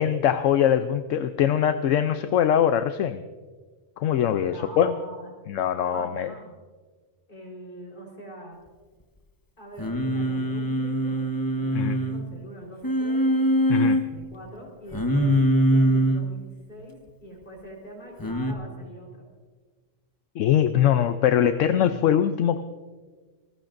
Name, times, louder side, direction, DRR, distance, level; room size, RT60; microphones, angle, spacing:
voice 1, 0.0-3.2 4.0-4.9 5.5-6.3 11.7-12.0 13.7-14.0 20.4-22.6, left 9 dB, 80° left, 9 dB, 1.0 m, -22 dB
voice 2, 4.5-5.3 5.8-6.5 7.3-8.6 9.6-11.3 11.5-13.3 13.8-15.3 15.7-19.2, equal, 40° left, -2 dB, 4.4 m, -43 dB
Singing, 9.8-12.2 12.8-14.0 14.9-16.2 18.2-18.5, equal, 15° left, 1.1 m, -23 dB
26.5 x 19.5 x 2.6 m, 1.4 s
omnidirectional pair, 1.3 m